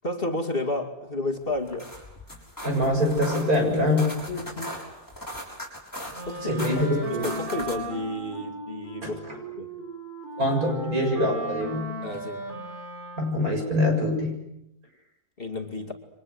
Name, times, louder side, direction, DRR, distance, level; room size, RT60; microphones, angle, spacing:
voice 1, 0.0-1.9 4.3-4.8 6.2-6.8 7.1-9.2 9.5-9.8 12.0-12.4 15.4-15.9, left 2 dB, 35° left, 3 dB, 2.7 m, -31 dB
sound 1, 1.5-7.9, equal, 10° left, 6.6 m, -39 dB
voice 2, 2.6-4.2 6.5-7.3 9.0-9.1 10.4-11.9 13.2-14.4, left 1 dB, 65° right, 2 dB, 7.9 m, -24 dB
Wind instrument woodwind instrument, 6.1-13.6, right 2 dB, 30° right, 6.6 m, -37 dB
30.0 x 24.5 x 8.1 m, 0.82 s
omnidirectional pair, 1.7 m